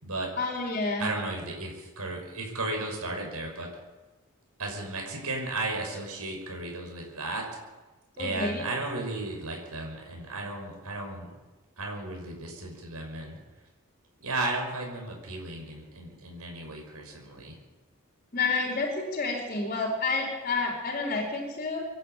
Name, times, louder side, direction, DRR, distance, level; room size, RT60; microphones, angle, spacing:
voice 1, 0.4-1.1 8.2-8.6 18.3-21.9, left 3 dB, 40° left, -1 dB, 4.4 m, -29 dB
voice 2, 1.0-3.7 4.6-7.5 8.2-11.3 11.8-13.4 14.2-17.5, right 2 dB, 85° right, 1 dB, 5.9 m, -34 dB
25.0 x 11.5 x 9.2 m, 1.2 s
head